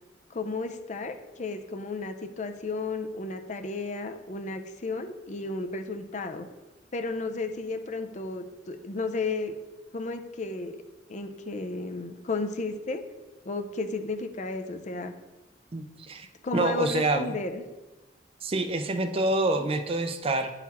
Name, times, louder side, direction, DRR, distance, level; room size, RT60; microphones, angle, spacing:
voice 1, 0.3-6.5 6.9-9.5 9.9-10.8 11.1-13.0 13.5-15.1 16.4-17.6, left 3 dB, 40° left, 7 dB, 0.5 m, -33 dB
voice 2, 15.7-17.3 18.4-20.5, right 2 dB, 30° right, 8 dB, 0.4 m, -27 dB
9.6 x 4.0 x 4.2 m, 1.2 s
head